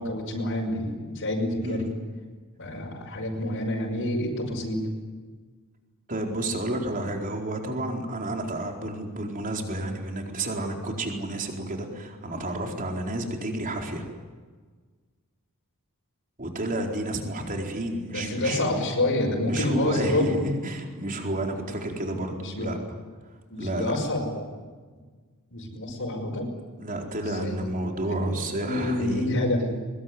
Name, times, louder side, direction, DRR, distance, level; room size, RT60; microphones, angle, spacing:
voice 1, 0.0-1.9 2.6-4.8 18.1-20.4 22.1-22.8 23.5-24.5 25.5-26.5 27.3-27.6 28.0-29.8, left 1 dB, 60° left, -1 dB, 5.7 m, -28 dB
voice 2, 6.1-14.1 16.4-18.7 19.5-22.8 23.2-24.0 26.8-29.3, right 1 dB, 40° right, 2 dB, 4.4 m, -31 dB
23.0 x 22.0 x 9.7 m, 1.5 s
head